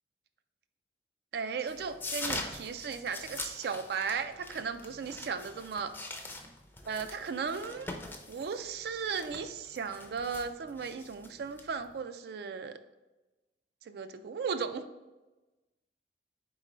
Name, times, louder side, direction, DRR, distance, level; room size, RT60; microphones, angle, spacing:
voice 1, 1.3-5.9 6.8-7.9 8.3-12.7 13.9-14.9, right 5 dB, 60° right, 10 dB, 0.3 m, -36 dB
sound 1, 1.7-12.0, left 2 dB, 10° left, 0.4 m, -43 dB
4.4 x 3.8 x 3.1 m, 1.1 s
head